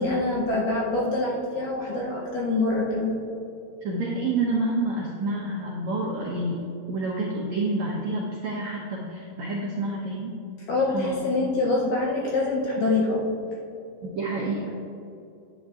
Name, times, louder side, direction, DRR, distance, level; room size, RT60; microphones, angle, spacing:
voice 1, 0.0-3.2 10.7-13.2, left 2 dB, 75° left, -2 dB, 2.0 m, -25 dB
voice 2, 3.8-10.3 10.9-11.3 14.0-14.7, right 2 dB, 80° right, -4 dB, 1.6 m, -28 dB
12.0 x 8.4 x 2.4 m, 2.7 s
omnidirectional pair, 4.6 m